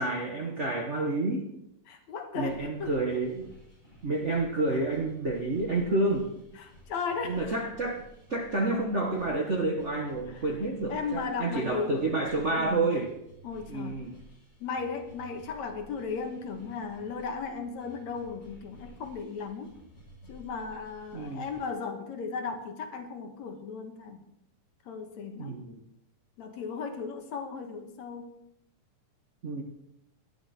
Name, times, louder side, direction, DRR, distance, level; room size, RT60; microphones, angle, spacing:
voice 1, 0.0-1.5 2.3-3.5 4.0-6.3 7.2-8.0 8.3-13.1 13.7-14.2 21.1-21.5 25.4-25.8 29.4-29.6, right 2 dB, 65° right, 1 dB, 0.7 m, -29 dB
voice 2, 1.9-2.9 6.6-7.6 10.3-10.4 10.9-12.0 12.5-12.8 13.4-14.0 14.6-19.7 20.3-24.2 24.9-25.6 26.4-28.3, left 5 dB, 65° left, 5 dB, 2.5 m, -36 dB
sound 1, 2.4-21.7, equal, 20° left, 7.0 m, -54 dB
18.0 x 11.5 x 4.4 m, 0.80 s
omnidirectional pair, 3.6 m